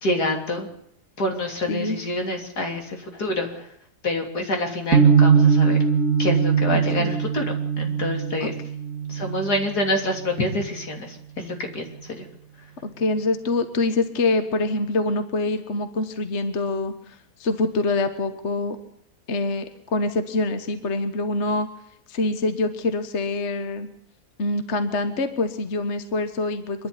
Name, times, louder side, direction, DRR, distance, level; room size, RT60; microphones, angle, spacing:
voice 1, 0.0-0.7 1.2-3.7 4.0-5.8 6.2-8.5 9.1-12.3, left 1 dB, 75° left, 2 dB, 3.9 m, -27 dB
sound 1, 4.9-11.0, right 6 dB, 55° right, 2.1 m, -21 dB
voice 2, 12.8-18.8 19.3-21.7 22.1-23.9 24.4-26.9, left 2 dB, 45° left, 9 dB, 1.5 m, -25 dB
26.0 x 11.0 x 9.8 m, 0.72 s
omnidirectional pair, 1.7 m